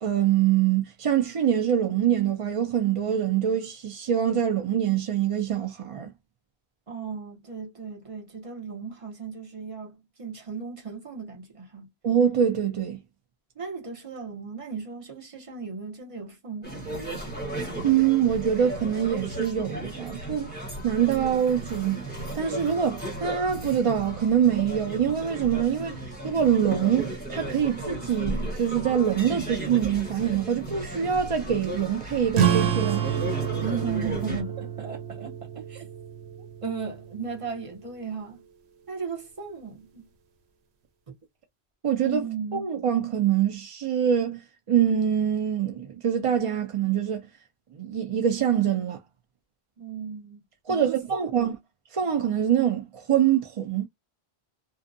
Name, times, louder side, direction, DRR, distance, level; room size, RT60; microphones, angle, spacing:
voice 1, 0.0-6.1 12.0-13.0 17.8-20.5 20.8-22.0 22.3-33.1 41.8-42.2 42.5-44.4 44.7-47.3 47.7-49.0 50.7-51.6 51.9-53.9, right 9 dB, 55° right, 0.4 m, -24 dB
voice 2, 6.9-11.9 13.6-17.0 33.6-35.9 36.6-38.5 38.9-40.1 42.0-42.8 49.8-50.4 50.7-51.6, right 5 dB, 35° right, 0.8 m, -36 dB
sound 1, 16.6-34.4, right 1 dB, 10° left, 1.1 m, -35 dB
sound 2, 32.3-37.4, right 9 dB, 85° right, 0.9 m, -28 dB
2.6 x 2.1 x 2.5 m
omnidirectional pair, 1.1 m